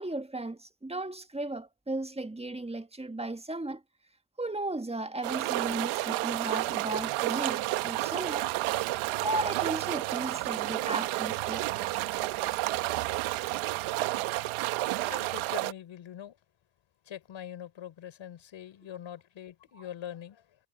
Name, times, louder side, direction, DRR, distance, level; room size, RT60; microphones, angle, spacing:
voice 1, 0.0-3.8 4.4-8.9 9.2-11.9 19.7-19.8, right 2 dB, 15° right, 1.7 m, -36 dB
sound 1, 5.2-15.7, right 18 dB, 85° right, 1.3 m, -31 dB
voice 2, 15.1-16.4 17.1-20.6, left 10 dB, 70° left, 5.1 m, -43 dB
hypercardioid pair, 40°, 48 cm